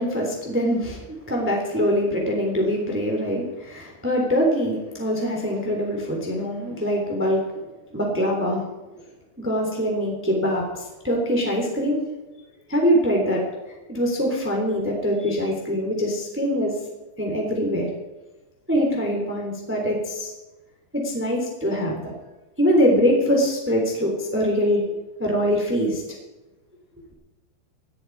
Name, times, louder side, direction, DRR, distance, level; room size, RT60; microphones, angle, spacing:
voice 1, 0.0-7.4 7.9-8.9 9.4-12.0 12.7-13.4 13.9-16.7 17.2-17.9 18.7-20.3 20.9-22.1 22.6-26.0, equal, 5° right, 0 dB, 2.1 m, -23 dB
19.0 x 13.5 x 4.8 m, 1.1 s
omnidirectional pair, 5.7 m